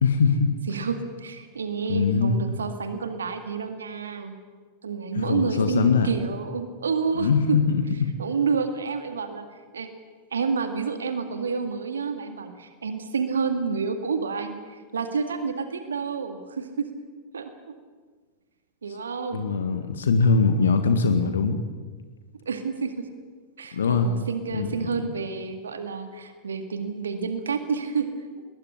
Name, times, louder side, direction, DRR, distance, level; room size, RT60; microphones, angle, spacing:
voice 1, 0.0-0.5 1.9-2.4 5.2-6.1 7.2-7.8 8.0-8.1 19.3-21.6 23.7-24.1 24.5-24.8, left 5 dB, 65° left, 8 dB, 1.8 m, -22 dB
voice 2, 0.7-4.3 4.8-7.6 8.2-9.9 10.3-16.9 17.3-17.7 18.8-19.5 22.5-23.1 23.6-28.2, right 5 dB, 70° right, 7 dB, 2.0 m, -29 dB
22.0 x 20.5 x 9.8 m, 1.4 s
figure-of-eight pair, 90°, 0 cm